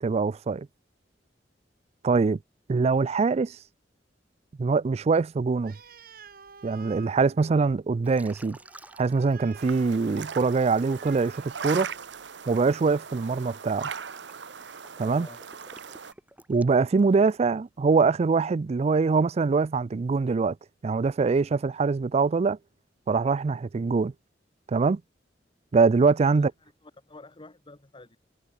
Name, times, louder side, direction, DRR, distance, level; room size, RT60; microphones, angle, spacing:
voice 1, 0.0-0.7 2.0-2.4 2.7-3.6 4.6-5.8 6.6-8.6 9.0-11.9 12.5-13.9 15.0-15.3 16.5-20.6 20.8-22.6 23.1-24.1 24.7-25.0 25.7-26.5, right 4 dB, 35° right, 0.4 m, -23 dB
Animal, 5.6-12.3, right 6 dB, 55° right, 2.3 m, -51 dB
Liquid, 8.0-10.0 10.5-17.5, right 1 dB, 10° right, 1.7 m, -53 dB
sound 1, 9.6-16.1, right 6 dB, 70° right, 1.0 m, -39 dB
voice 2, 15.0-15.4 26.3-28.2, left 2 dB, 30° left, 1.4 m, -49 dB
head